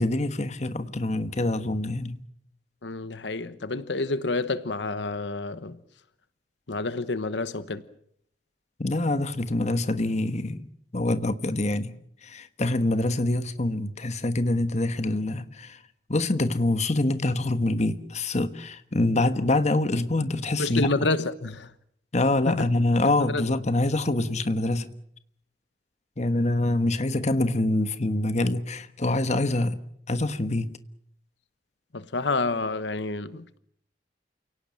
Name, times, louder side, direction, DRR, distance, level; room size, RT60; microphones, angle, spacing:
voice 1, 0.0-2.2 8.8-10.6 10.9-12.0 12.2-15.8 16.1-21.1 22.1-24.9 26.2-29.8 30.1-30.7, left 2 dB, 40° left, 1.3 m, -25 dB
voice 2, 2.8-5.8 6.7-7.8 20.6-21.7 22.5-22.6 23.2-23.4 31.9-33.6, left 3 dB, 80° left, 1.1 m, -28 dB
29.0 x 18.0 x 7.6 m
head